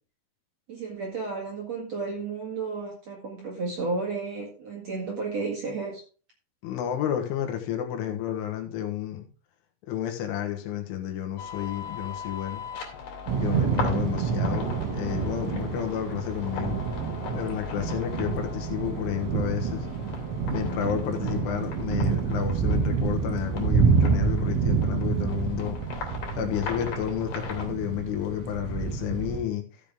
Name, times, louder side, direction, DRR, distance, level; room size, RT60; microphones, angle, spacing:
voice 1, 0.7-6.0, right 4 dB, 50° right, -2 dB, 2.2 m, -32 dB
voice 2, 6.6-9.3 9.8-12.6 13.4-16.8 17.3-19.9 20.5-25.8 26.4-29.8, left 11 dB, 80° left, 5 dB, 3.8 m, -31 dB
sound 1, 11.4-27.7, left 5 dB, 55° left, 4.2 m, -40 dB
Thunder / Rain, 13.3-29.4, right 6 dB, 75° right, 4.5 m, -28 dB
14.0 x 7.3 x 3.6 m, 0.37 s
omnidirectional pair, 5.7 m